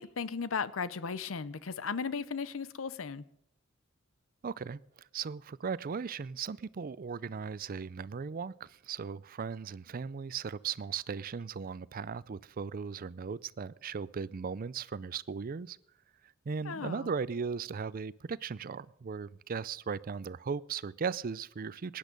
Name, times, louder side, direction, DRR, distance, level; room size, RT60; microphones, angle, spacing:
voice 1, 0.0-3.2 16.6-17.1, left 5 dB, 85° left, 16 dB, 0.7 m, -36 dB
voice 2, 4.4-4.8 5.1-15.8 16.5-22.0, right 5 dB, 45° right, 20 dB, 0.4 m, -37 dB
18.5 x 10.5 x 5.2 m, 0.75 s
head